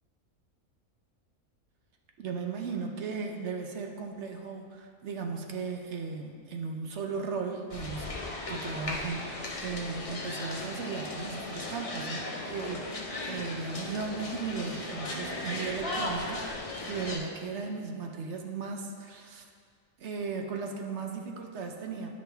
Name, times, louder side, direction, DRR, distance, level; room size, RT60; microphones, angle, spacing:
voice 1, 2.2-8.1 8.5-19.5 20.0-22.1, right 4 dB, 60° right, 3 dB, 0.9 m, -36 dB
sound 1, 7.7-17.2, left 2 dB, 30° left, 0.7 m, -37 dB
10.5 x 5.2 x 3.4 m, 2.1 s
omnidirectional pair, 1.5 m